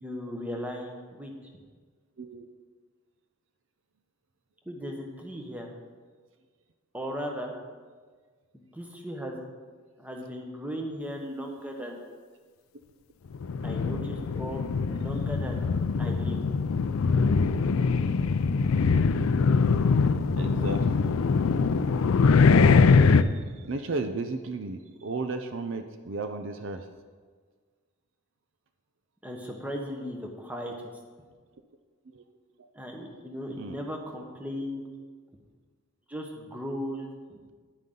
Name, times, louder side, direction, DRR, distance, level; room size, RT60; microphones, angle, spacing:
voice 1, 0.0-1.3 4.7-5.7 6.9-7.5 8.7-9.4 10.0-12.0 13.6-15.6 16.0-16.4 29.2-30.7 32.7-34.8 36.1-37.4, equal, 5° right, 1 dB, 1.1 m, -37 dB
sound 1, 13.3-23.2, left 4 dB, 80° left, 0.4 m, -23 dB
voice 2, 20.4-21.0 23.0-26.9 32.1-32.2 32.6-32.7 33.5-33.8, right 3 dB, 60° right, 7 dB, 0.6 m, -34 dB
11.0 x 9.3 x 3.8 m, 1.5 s
head